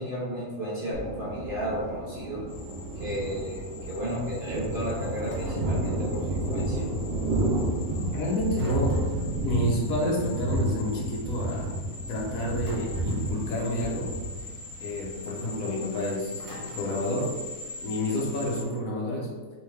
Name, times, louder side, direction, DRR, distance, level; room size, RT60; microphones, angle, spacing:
voice 1, 0.0-2.4 2.9-6.9, equal, 40° right, -6 dB, 1.0 m, -33 dB
Thunder, 0.9-15.7, right 1 dB, 65° right, 1.1 m, -31 dB
sound 1, 2.5-18.6, left 3 dB, 45° left, 1.5 m, -44 dB
sound 2, 5.3-5.8 8.5-9.4 12.6-13.3 16.4-17.0, equal, 20° left, 0.6 m, -45 dB
voice 2, 8.1-9.0 9.4-11.7 12.1-14.3 14.8-17.3 17.8-19.3, left 1 dB, 70° left, -2 dB, 1.2 m, -29 dB
3.5 x 3.4 x 3.2 m, 1.4 s
omnidirectional pair, 1.6 m